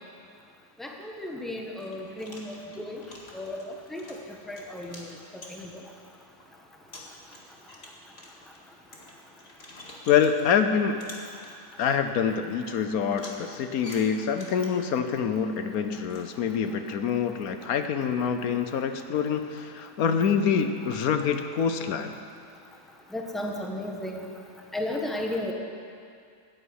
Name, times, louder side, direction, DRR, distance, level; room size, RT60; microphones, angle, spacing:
voice 1, 0.8-3.0 3.3-3.6 3.9-4.0 4.5-5.1 5.5-5.6 23.1-24.2 24.7-25.5, left 1 dB, ahead, 0 dB, 1.4 m, -34 dB
sound 1, 1.2-1.3 1.8-5.9 6.4-6.5 6.9-10.6 11.0-11.9 13.1-14.9 16.1-16.3, left 1 dB, 45° left, 2.2 m, -47 dB
voice 2, 10.1-11.0 11.8-22.1, left 7 dB, 75° left, 8 dB, 1.2 m, -26 dB
14.0 x 9.4 x 9.5 m, 2.4 s
omnidirectional pair, 1.5 m